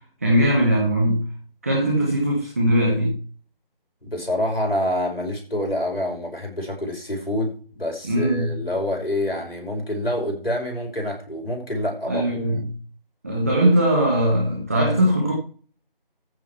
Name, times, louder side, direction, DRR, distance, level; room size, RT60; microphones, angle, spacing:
voice 1, 0.2-1.3 1.6-3.1 8.0-8.6 12.1-12.7 13.2-15.3, equal, 15° right, 1.4 m, -20 dB
voice 2, 4.0-12.3, left 1 dB, 80° left, 5.6 m, -27 dB
14.0 x 5.2 x 5.8 m
figure-of-eight pair, 165°, 29 cm